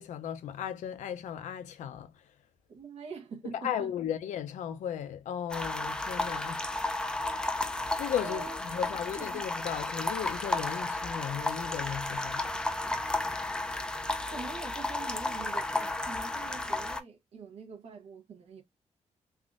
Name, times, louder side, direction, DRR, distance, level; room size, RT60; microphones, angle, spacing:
voice 1, 0.0-2.3 3.5-6.8 8.0-12.6, left 9 dB, 85° left, 0.5 m, -36 dB
voice 2, 2.7-3.9 8.2-8.6 9.1-9.4 14.3-18.6, right 4 dB, 60° right, 0.9 m, -44 dB
sound 1, 5.5-17.0, left 2 dB, 5° left, 0.3 m, -33 dB
3.4 x 2.5 x 2.4 m
wide cardioid pair, 170°, 12 cm